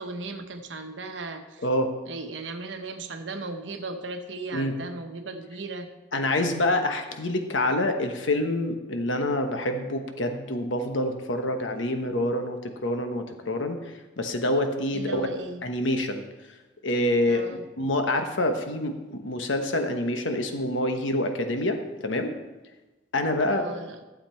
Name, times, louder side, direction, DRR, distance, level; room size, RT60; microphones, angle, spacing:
voice 1, 0.0-1.7 2.1-5.9 14.9-15.6 17.3-17.6 23.5-24.0, right 3 dB, 75° right, 6 dB, 0.9 m, -36 dB
voice 2, 6.1-15.3 15.6-16.2 16.8-22.4 23.1-23.7, left 1 dB, 85° left, 6 dB, 1.1 m, -27 dB
12.0 x 7.7 x 4.5 m, 1.1 s
head